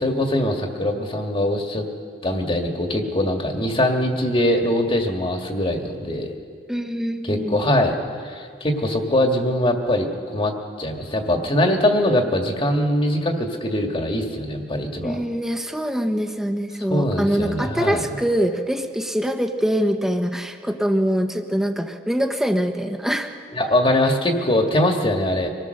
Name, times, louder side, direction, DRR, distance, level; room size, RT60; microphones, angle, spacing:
voice 1, 0.0-1.9 2.2-6.3 7.2-7.9 8.2-10.1 10.3-15.2 16.9-18.0 23.5-25.5, left 1 dB, 30° left, 3 dB, 2.0 m, -22 dB
voice 2, 6.7-7.6 15.0-23.3, equal, 5° right, 5 dB, 1.2 m, -24 dB
25.0 x 18.5 x 6.7 m, 2.1 s
head